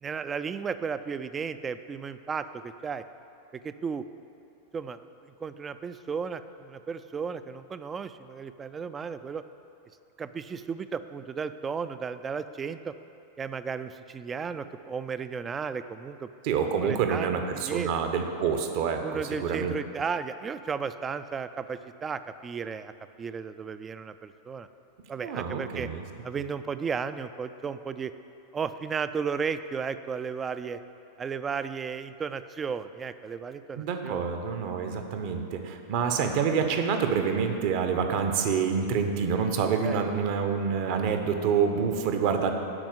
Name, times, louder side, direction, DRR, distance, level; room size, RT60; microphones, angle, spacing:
voice 1, 0.0-3.0 3.5-4.1 4.7-9.4 10.2-12.9 13.4-16.3 16.8-17.9 19.0-22.9 23.2-24.7 25.1-25.9 26.2-28.1 28.5-30.8 31.2-34.2 39.8-40.0, right 6 dB, 20° right, 12 dB, 0.3 m, -34 dB
voice 2, 16.4-19.7 25.2-26.0 33.8-42.5, right 6 dB, 45° right, 6 dB, 0.9 m, -27 dB
11.0 x 4.3 x 7.7 m, 2.7 s
figure-of-eight pair, 90°, 0 cm